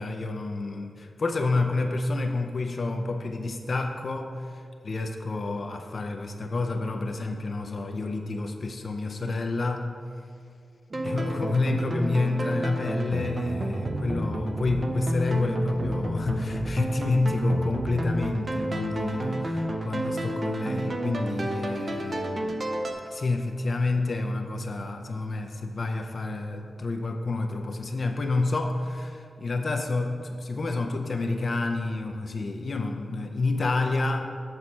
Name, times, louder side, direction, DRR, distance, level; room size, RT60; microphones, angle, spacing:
voice 1, 0.0-9.9 11.0-22.6 23.0-34.2, left 3 dB, 50° left, 4 dB, 0.5 m, -29 dB
sound 1, 10.9-22.9, right 1 dB, 40° right, 0.6 m, -30 dB
7.6 x 4.1 x 6.3 m, 2.3 s
wide cardioid pair, 125°, 0 cm